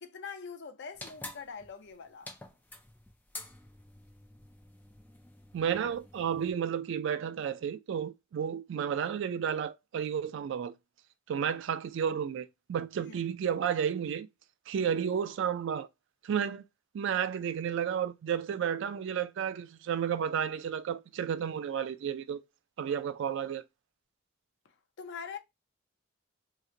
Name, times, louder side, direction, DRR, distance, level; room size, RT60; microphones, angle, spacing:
voice 1, 0.0-2.3 13.0-13.2 24.6-25.4, left 6 dB, 60° left, 0.5 m, -44 dB
sound 1, 0.9-6.5, left 2 dB, 10° left, 0.4 m, -49 dB
voice 2, 5.5-10.7 11.3-14.3 14.7-15.9 16.2-16.6 16.9-22.4 22.8-23.6, right 8 dB, 60° right, 0.3 m, -32 dB
2.9 x 2.1 x 3.6 m
head